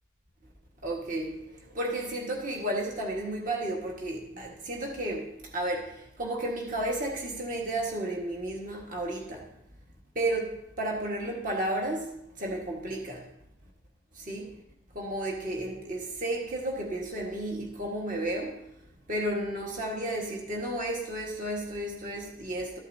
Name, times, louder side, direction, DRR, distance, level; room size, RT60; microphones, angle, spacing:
voice 1, 0.8-9.5 10.2-12.1 12.4-13.3 14.1-14.6 14.9-18.6 19.1-22.8, right 1 dB, 40° right, -1 dB, 1.6 m, -33 dB
13.5 x 8.0 x 2.8 m, 0.78 s
head